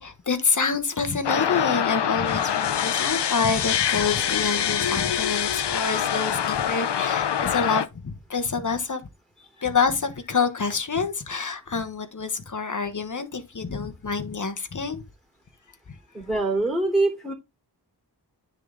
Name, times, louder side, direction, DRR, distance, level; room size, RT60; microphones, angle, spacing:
voice 1, 0.0-9.0 9.6-15.0, left 5 dB, 45° left, 1.2 m, -27 dB
sound 1, 1.2-7.9, left 9 dB, 85° left, 0.7 m, -25 dB
voice 2, 16.1-17.3, right 2 dB, ahead, 3.3 m, -24 dB
9.7 x 4.0 x 3.5 m
cardioid pair, 55°, 40 cm